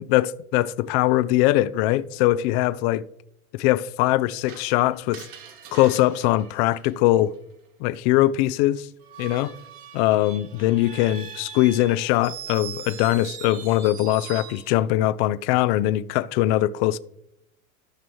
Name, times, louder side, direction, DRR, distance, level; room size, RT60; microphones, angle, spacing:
voice 1, 0.0-3.0 3.6-5.2 5.7-7.3 7.8-8.9 9.2-9.5 9.9-17.0, left 15 dB, 45° left, 0.5 m, -21 dB
Screech, 4.5-7.4 9.0-14.7, right 8 dB, 50° right, 1.7 m, -41 dB
13.0 x 6.1 x 3.0 m
hypercardioid pair, 90°, 45 cm